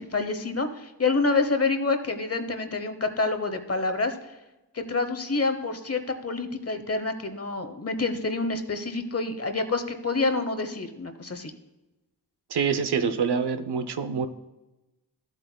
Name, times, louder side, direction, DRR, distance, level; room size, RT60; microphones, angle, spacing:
voice 1, 0.0-4.1 4.7-11.5, left 3 dB, 35° left, 8 dB, 1.0 m, -27 dB
voice 2, 12.5-14.3, right 6 dB, 75° right, 9 dB, 0.8 m, -26 dB
13.5 x 8.1 x 2.3 m, 1.0 s
wide cardioid pair, 65°, 40 cm